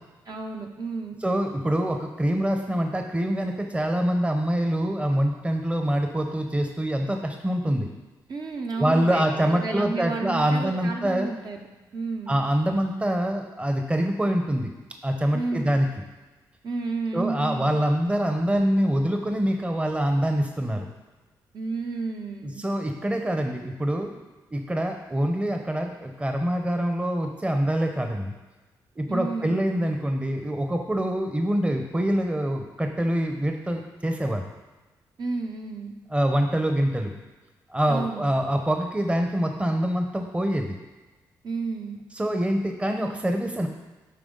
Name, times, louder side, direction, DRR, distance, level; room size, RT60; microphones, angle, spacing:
voice 1, 0.3-1.2 8.3-11.7 11.9-12.4 15.3-15.8 16.6-17.8 21.5-22.7 29.1-29.6 35.2-36.0 37.9-38.2 41.4-42.0, right 3 dB, 50° right, 2 dB, 1.0 m, -31 dB
voice 2, 1.2-7.9 8.8-11.3 12.3-14.7 15.0-15.9 17.1-20.9 22.4-24.1 24.5-28.3 29.0-34.4 36.1-37.1 37.7-40.8 42.1-43.7, equal, 15° right, 4 dB, 0.8 m, -25 dB
10.5 x 3.5 x 3.9 m, 1.2 s
supercardioid pair, 55°, 8 cm